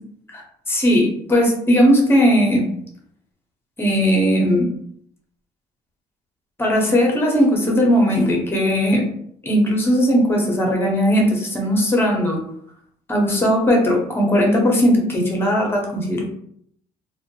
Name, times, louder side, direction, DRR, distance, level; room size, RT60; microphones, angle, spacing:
voice 1, 0.3-2.7 3.8-4.7 6.6-9.1 9.4-12.4 13.1-16.3, equal, 15° left, 0 dB, 0.7 m, -18 dB
2.2 x 2.0 x 2.9 m, 0.66 s
cardioid pair, 110°, 17 cm